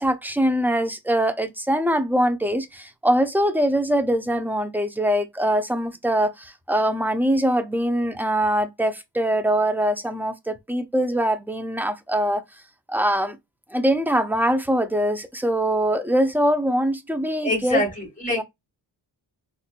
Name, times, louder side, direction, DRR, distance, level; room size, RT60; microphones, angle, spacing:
voice 1, 0.0-12.4 12.9-13.4 13.7-17.8 18.3-18.4, right 1 dB, 5° right, 0.5 m, -23 dB
voice 2, 17.4-18.4, left 1 dB, 15° left, 2.0 m, -25 dB
4.1 x 2.5 x 2.2 m
cardioid pair, 60°, 46 cm